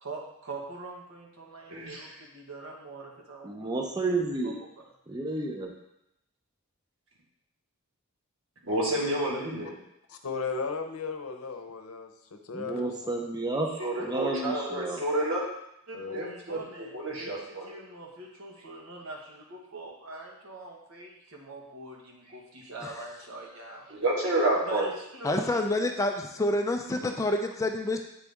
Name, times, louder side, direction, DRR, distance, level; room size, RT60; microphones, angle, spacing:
voice 1, 0.0-3.7 4.4-4.5 15.9-23.9 24.6-25.5, right 2 dB, 80° right, -2 dB, 1.4 m, -43 dB
voice 2, 1.7-2.1 8.6-9.8 13.8-15.4 16.1-16.6 16.9-17.7 23.9-24.9, right 1 dB, 65° right, -4 dB, 1.8 m, -29 dB
voice 3, 3.4-4.6 5.1-5.7 12.5-13.7 14.0-15.0, right 2 dB, 20° right, 1 dB, 0.6 m, -31 dB
voice 4, 10.1-13.1 13.8-13.9 15.9-16.2 27.1-27.2, left 4 dB, 90° left, 6 dB, 0.7 m, -36 dB
voice 5, 25.2-28.0, left 1 dB, 15° left, 4 dB, 0.4 m, -28 dB
8.5 x 4.0 x 3.5 m, 0.81 s
head